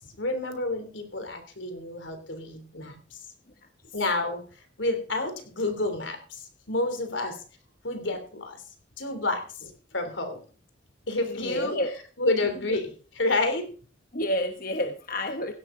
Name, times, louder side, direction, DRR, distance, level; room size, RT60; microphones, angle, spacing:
voice 1, 0.0-3.2 3.9-7.4 7.8-8.6 9.0-10.4 11.1-11.8 12.2-13.7, left 2 dB, 85° left, 7 dB, 3.2 m, -30 dB
voice 2, 11.2-12.0 14.1-15.5, left 1 dB, 50° left, 6 dB, 1.2 m, -29 dB
16.5 x 12.0 x 3.8 m, 0.39 s
head